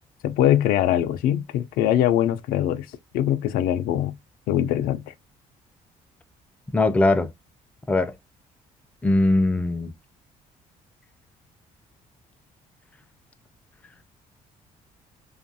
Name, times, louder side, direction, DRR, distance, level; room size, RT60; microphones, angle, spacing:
voice 1, 0.2-2.9 3.1-4.2 4.5-5.1, left 11 dB, 80° left, 0.4 m, -22 dB
voice 2, 6.7-7.3 7.9-8.1 9.0-9.9, left 2 dB, 10° left, 0.3 m, -20 dB
2.6 x 2.4 x 2.6 m
cardioid pair, 105°, 15 cm